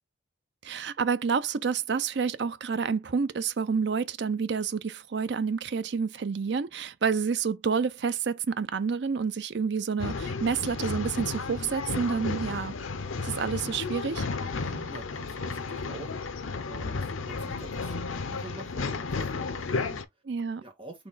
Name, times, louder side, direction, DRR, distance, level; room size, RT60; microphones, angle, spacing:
voice 1, 0.6-12.7 13.2-14.3 20.3-20.6, right 5 dB, 60° right, 0.5 m, -29 dB
Male speech man speaking / Chatter / Rattle, 10.0-20.0, left 4 dB, 90° left, 0.6 m, -33 dB
voice 2, 14.6-16.1 16.7-20.2 20.6-21.1, right 2 dB, 25° right, 1.5 m, -47 dB
4.3 x 3.1 x 3.9 m
head